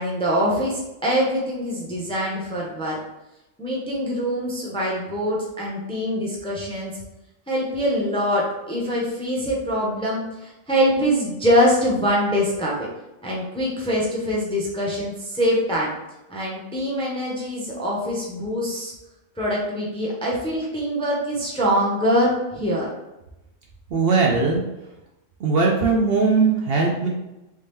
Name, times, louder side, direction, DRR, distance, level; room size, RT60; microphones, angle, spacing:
voice 1, 0.0-3.0 3.6-6.9 7.5-12.8 13.2-15.9 16.3-18.9 19.4-22.9, equal, 5° left, -4 dB, 0.5 m, -24 dB
voice 2, 23.9-24.6 25.4-27.1, right 4 dB, 60° right, -1 dB, 0.7 m, -19 dB
3.3 x 2.8 x 3.4 m, 0.94 s
omnidirectional pair, 1.3 m